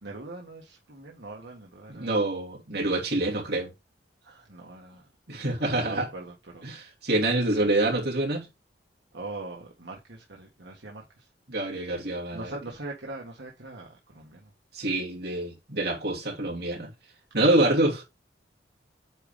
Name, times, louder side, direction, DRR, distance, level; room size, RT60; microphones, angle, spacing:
voice 1, 0.0-2.1 4.2-5.0 5.8-6.6 9.1-11.0 12.3-14.4, right 2 dB, 80° right, 1.5 m, -41 dB
voice 2, 1.9-3.7 5.3-6.1 6.6-8.5 11.5-12.5 14.7-16.9 17.3-18.0, right 2 dB, 60° right, 2.8 m, -26 dB
8.9 x 3.8 x 3.4 m
head